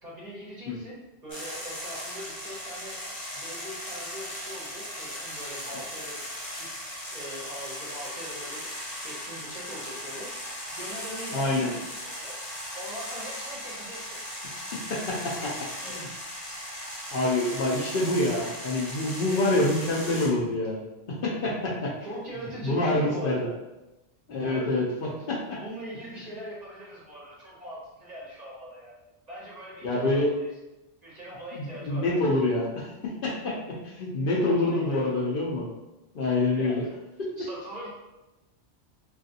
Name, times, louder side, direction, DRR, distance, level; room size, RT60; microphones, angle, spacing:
voice 1, 0.0-3.0 3.3-6.2 6.5-6.7 7.1-8.7 9.0-10.3 10.7-12.4 12.7-14.2 15.1-16.1 19.3-20.1 22.0-23.6 24.3-24.9 25.5-29.0 29.3-30.5 31.0-32.2 34.5-35.3 36.5-37.0 37.4-37.9, right 1 dB, 45° right, -5 dB, 0.7 m, -41 dB
sound 1, 1.3-20.3, left 1 dB, 20° left, 0.5 m, -38 dB
voice 2, 11.3-11.7 14.7-15.2 15.8-16.0 17.1-20.8 21.1-21.9 22.6-23.4 24.3-24.8 25.3-25.6 29.8-30.3 31.6-35.7 36.1-36.8 37.2-37.3, left 2 dB, 60° left, -4 dB, 0.7 m, -26 dB
3.2 x 2.4 x 2.6 m, 0.99 s
omnidirectional pair, 1.2 m